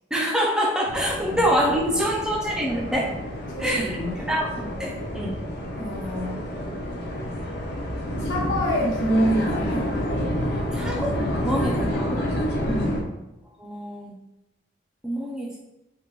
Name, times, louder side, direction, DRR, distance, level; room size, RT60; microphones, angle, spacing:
voice 1, 0.1-3.1 3.6-5.4 10.7-12.3 13.6-14.1 15.0-15.5, equal, 5° right, -1 dB, 0.3 m, -26 dB
sound 1, 0.9-13.0, equal, 55° left, 0.5 m, -29 dB
voice 2, 3.5-4.2 5.7-6.4 8.2-9.9 12.6-13.0, equal, 80° left, -4 dB, 0.9 m, -26 dB
3.4 x 2.1 x 2.9 m, 0.97 s
head